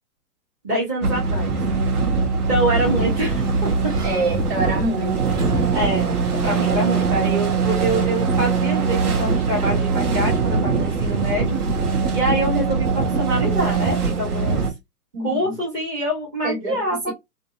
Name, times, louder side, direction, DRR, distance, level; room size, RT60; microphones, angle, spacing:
voice 1, 0.6-1.6 2.3-3.7 5.7-6.1 6.4-11.6 12.1-14.6 15.2-17.1, right 1 dB, 15° right, 0.5 m, -25 dB
sound 1, 1.0-14.7, right 4 dB, 70° right, 0.9 m, -22 dB
Sliding door, 2.2-7.0, right 4 dB, 55° right, 1.4 m, -32 dB
voice 2, 4.0-5.4 15.1-15.6 16.4-17.1, right 2 dB, 35° right, 1.3 m, -26 dB
2.6 x 2.1 x 2.4 m
figure-of-eight pair, 125°, 46 cm